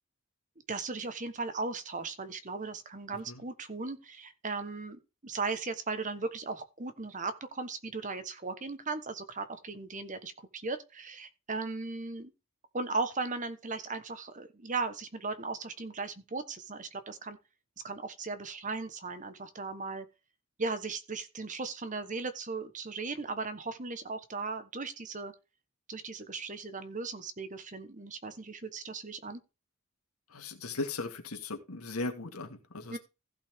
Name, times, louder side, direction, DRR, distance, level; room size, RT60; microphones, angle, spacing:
voice 1, 0.7-12.3 12.7-17.4 17.8-20.1 20.6-25.3 25.9-29.4 32.9-33.0, right 3 dB, 35° right, 1.2 m, -37 dB
voice 2, 30.3-33.0, left 3 dB, 85° left, 2.0 m, -38 dB
15.5 x 5.7 x 3.6 m
head